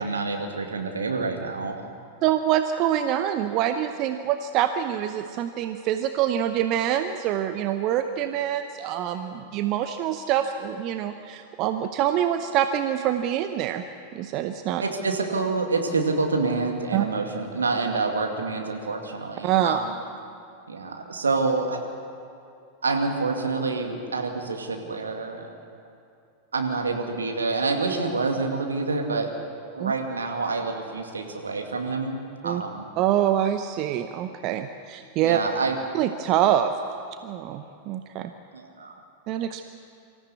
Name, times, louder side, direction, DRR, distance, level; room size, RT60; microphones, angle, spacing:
voice 1, 0.0-1.8 14.8-19.9 20.7-21.8 22.8-25.5 26.5-29.3 29.7-32.9 35.2-35.8 38.5-39.0, right 3 dB, 75° right, 3 dB, 2.3 m, -27 dB
voice 2, 2.2-13.8 14.1-14.8 16.9-17.0 19.4-19.8 29.8-29.9 32.4-32.6 33.0-35.4 35.9-36.7 37.2-38.3 39.3-39.7, right 11 dB, 40° right, 8 dB, 0.8 m, -25 dB
25.0 x 14.5 x 8.3 m, 2.6 s
figure-of-eight pair, 90°, 0 cm